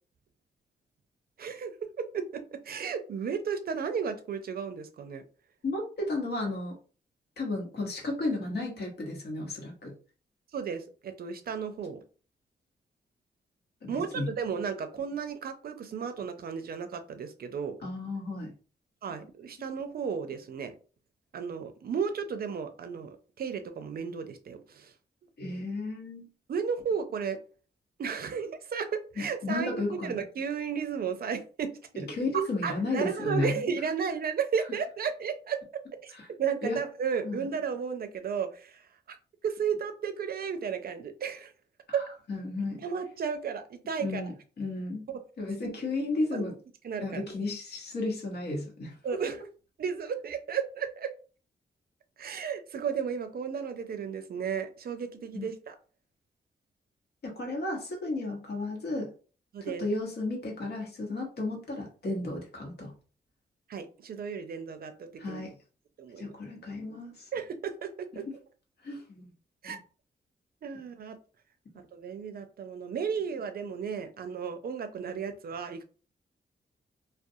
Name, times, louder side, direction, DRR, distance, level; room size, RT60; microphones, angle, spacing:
voice 1, 1.4-1.7 2.0-5.2 10.5-12.0 13.9-17.8 19.0-20.8 21.3-24.9 26.5-27.4 28.0-32.1 32.3-35.6 36.0-39.2 39.4-41.5 42.8-44.3 45.1-45.2 46.3-46.4 46.8-47.2 49.0-49.4 49.8-51.1 52.2-55.7 59.5-59.9 63.7-65.4 66.0-66.3 67.3-68.3 69.6-69.8 70.6-71.2 71.9-75.8, right 6 dB, 60° right, 8 dB, 0.5 m, -34 dB
voice 2, 5.6-6.7 7.4-9.9 13.8-14.3 17.8-18.5 25.4-26.3 29.2-30.2 32.1-33.7 36.1-36.3 36.6-36.8 37.2-37.5 41.9-42.0 42.3-42.8 44.0-45.0 45.4-46.5 47.0-49.0 55.3-55.5 57.2-59.1 59.6-62.9 65.2-65.5 66.2-67.3 68.1-68.2 68.8-69.3 69.6-69.8, left 2 dB, 65° left, 0 dB, 1.1 m, -33 dB
2.4 x 2.2 x 2.7 m, 0.38 s
cardioid pair, 65°, 18 cm